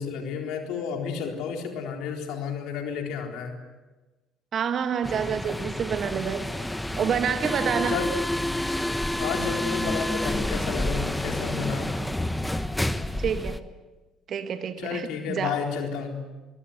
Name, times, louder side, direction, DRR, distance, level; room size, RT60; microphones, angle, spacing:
voice 1, 0.0-3.5 7.9-8.1 9.2-11.9 14.8-16.2, left 6 dB, 65° left, 2 dB, 4.0 m, -31 dB
voice 2, 4.5-6.4 7.0-8.0 13.2-13.7 14.3-15.6, right 7 dB, 50° right, 8 dB, 1.8 m, -28 dB
sound 1, 5.0-13.6, left 1 dB, 10° left, 1.3 m, -29 dB
24.0 x 22.5 x 8.0 m, 1.2 s
hypercardioid pair, 55°, 0 cm